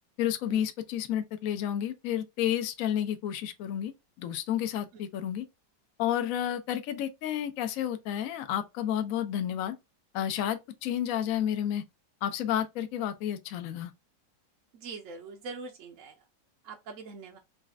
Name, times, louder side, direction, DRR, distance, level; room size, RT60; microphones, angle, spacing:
voice 1, 0.2-3.9 4.2-5.4 6.0-9.8 10.1-11.8 12.2-13.9, left 10 dB, 70° left, 0.8 m, -31 dB
voice 2, 14.7-16.1 16.6-17.4, right 4 dB, 60° right, 0.8 m, -42 dB
4.1 x 2.4 x 3.4 m
omnidirectional pair, 1.9 m